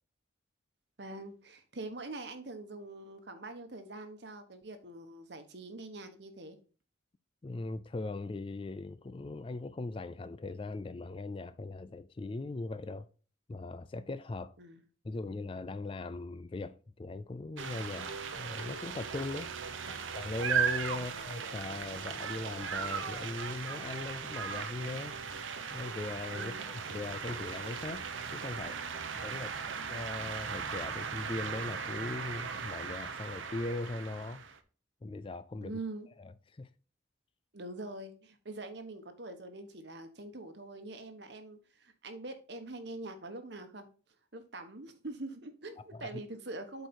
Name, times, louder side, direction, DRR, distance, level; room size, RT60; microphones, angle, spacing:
voice 1, 1.0-6.6 14.6-14.8 19.8-20.0 20.9-21.2 26.3-26.7 29.3-29.6 35.6-36.1 37.5-43.9 44.3-46.9, right 2 dB, 55° right, 1.2 m, -44 dB
voice 2, 7.4-13.1 13.5-14.5 15.0-18.1 18.4-19.5 20.1-25.2 25.7-28.8 29.2-29.5 29.9-34.4 35.0-35.8 36.2-36.7 45.9-46.1, left 2 dB, 25° left, 0.3 m, -39 dB
sound 1, 17.6-34.6, right 6 dB, 75° right, 0.9 m, -37 dB
8.1 x 4.6 x 4.3 m
head